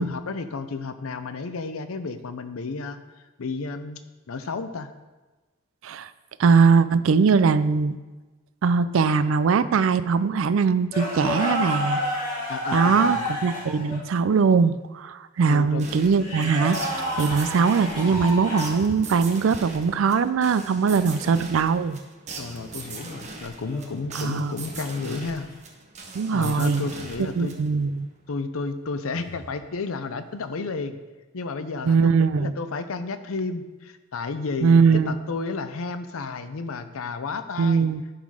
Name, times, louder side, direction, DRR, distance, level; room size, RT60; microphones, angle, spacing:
voice 1, 0.0-3.0 3.4-4.0 4.3-4.9 12.5-13.3 15.4-15.8 22.4-25.5 26.3-27.5 28.3-31.0 31.3-37.9, left 4 dB, 80° left, 11 dB, 0.6 m, -32 dB
voice 2, 6.4-8.0 8.6-12.0 12.7-22.0 24.1-24.5 26.1-26.9 27.4-28.1 31.8-32.5 34.6-35.2 37.6-38.0, right 5 dB, 70° right, 14 dB, 0.4 m, -21 dB
sound 1, 10.9-14.0 16.1-18.8 21.2-21.4 23.6-24.0 26.9-27.1 29.1-29.4, left 1 dB, 35° left, 2.9 m, -30 dB
sound 2, 15.8-27.9, right 3 dB, 35° right, 1.0 m, -40 dB
11.0 x 3.9 x 4.8 m, 1.2 s
head